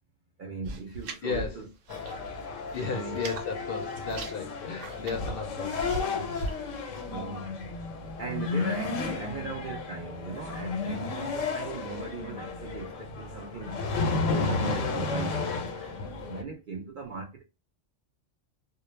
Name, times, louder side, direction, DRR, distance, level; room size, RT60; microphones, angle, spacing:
voice 1, 0.4-1.7 2.0-2.3 2.6-3.2 7.1-7.5 8.0-13.7 14.2-17.4, right 4 dB, 60° right, 0.6 m, -39 dB
sound 1, 0.6-2.2 2.5-3.5 3.8-6.6, right 2 dB, 85° right, 1.0 m, -39 dB
voice 2, 1.2-1.6 2.7-5.8, left 5 dB, 60° left, 0.6 m, -34 dB
sound 2, 1.9-16.4, left 4 dB, 85° left, 1.0 m, -33 dB
2.2 x 2.0 x 3.0 m
omnidirectional pair, 1.3 m